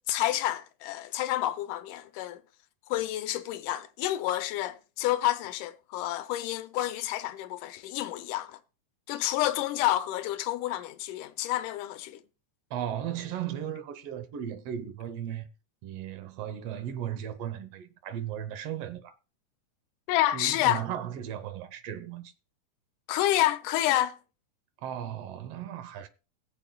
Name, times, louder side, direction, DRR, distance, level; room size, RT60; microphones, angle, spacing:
voice 1, 0.1-2.4 2.9-8.6 9.1-12.2 20.1-20.8 23.1-24.2, left 14 dB, 85° left, 2.2 m, -29 dB
voice 2, 12.7-15.5 15.8-19.1 20.3-22.3 24.8-26.1, right 10 dB, 65° right, 1.6 m, -36 dB
21.0 x 7.1 x 2.3 m
omnidirectional pair, 3.6 m